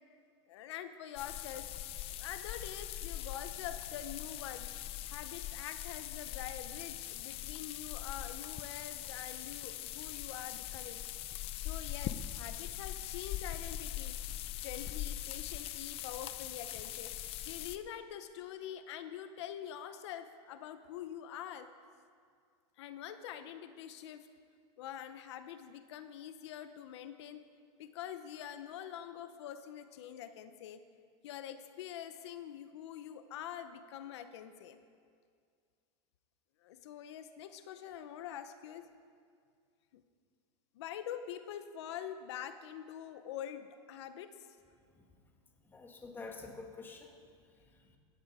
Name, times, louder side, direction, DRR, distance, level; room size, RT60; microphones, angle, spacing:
voice 1, 0.5-1.7 2.1-4.7 5.0-11.0 11.6-14.2 14.6-17.1 17.4-21.7 22.8-24.3 24.8-27.4 27.8-30.8 31.2-34.8 36.6-38.9 39.9-40.0 40.7-44.6, left 10 dB, 85° left, 10 dB, 0.9 m, -45 dB
sound 1, 1.2-17.8, left 12 dB, 45° left, 0.7 m, -42 dB
voice 2, 45.7-47.1 47.6-48.0, left 3 dB, 15° left, 2 dB, 1.8 m, -48 dB
17.0 x 14.5 x 4.9 m, 2.2 s
supercardioid pair, 145°, 14 cm